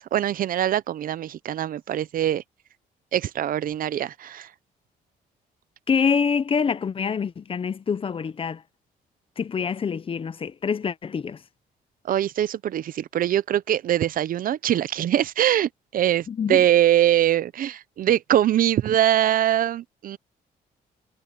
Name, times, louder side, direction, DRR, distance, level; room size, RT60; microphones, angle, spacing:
voice 1, 0.0-2.4 3.1-4.5 12.0-20.2, right 11 dB, 60° right, 0.7 m, -23 dB
voice 2, 5.9-8.6 9.4-11.4 16.3-16.6, left 6 dB, 35° left, 0.8 m, -25 dB
cardioid pair, 110°, 16 cm